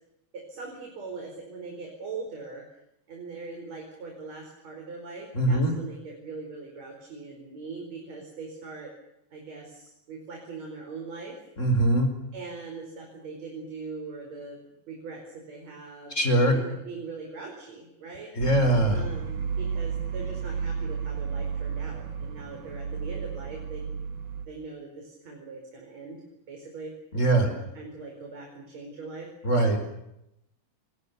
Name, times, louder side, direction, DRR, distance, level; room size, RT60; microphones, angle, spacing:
voice 1, 0.5-2.6 3.1-8.9 9.3-11.4 12.3-14.6 14.9-18.3 18.9-23.8 24.5-26.2 26.5-29.3, right 4 dB, 65° right, 1 dB, 6.1 m, -41 dB
voice 2, 5.3-5.7 11.6-12.1 16.1-16.6 18.4-19.1 27.1-27.5 29.4-29.8, right 1 dB, 25° left, 7 dB, 4.9 m, -22 dB
sound 1, 18.4-24.5, right 6 dB, 90° right, 3.4 m, -32 dB
28.0 x 22.0 x 6.9 m, 0.85 s
omnidirectional pair, 3.3 m